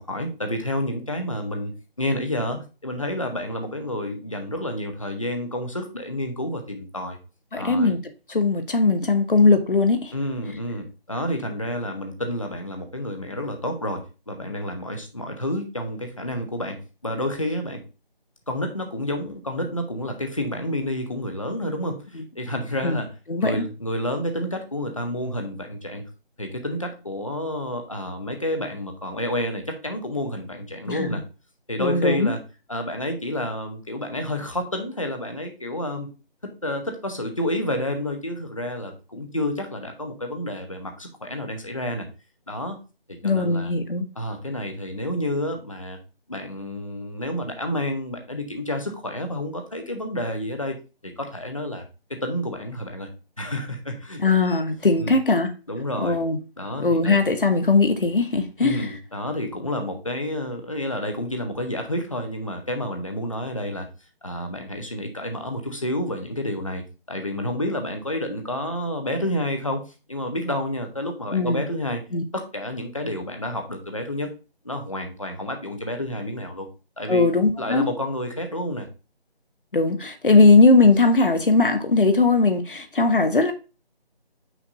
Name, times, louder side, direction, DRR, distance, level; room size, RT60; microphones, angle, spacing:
voice 1, 0.0-7.2 7.6-7.9 10.1-17.8 18.5-23.1 23.4-26.1 26.4-31.2 31.7-32.4 32.7-36.1 36.4-42.1 42.5-42.8 43.1-43.7 44.2-46.0 46.3-50.8 51.0-51.8 52.1-53.1 53.4-54.2 55.0-55.1 55.7-56.2 56.6-57.2 58.6-63.9 64.2-69.8 70.1-72.0 72.3-74.3 74.6-76.7 77.0-77.3 77.6-78.9, left 1 dB, 30° left, 0.8 m, -29 dB
voice 2, 7.5-8.0 8.3-10.1 22.1-22.2 22.8-23.0 23.3-23.6 30.8-31.2 31.8-32.3 43.2-44.1 54.2-55.5 56.0-56.4 56.8-58.9 71.3-71.6 72.1-72.2 77.1-77.9 79.7-83.5, left 3 dB, 55° left, 1.0 m, -19 dB
5.9 x 4.1 x 4.0 m
figure-of-eight pair, 175°, 31 cm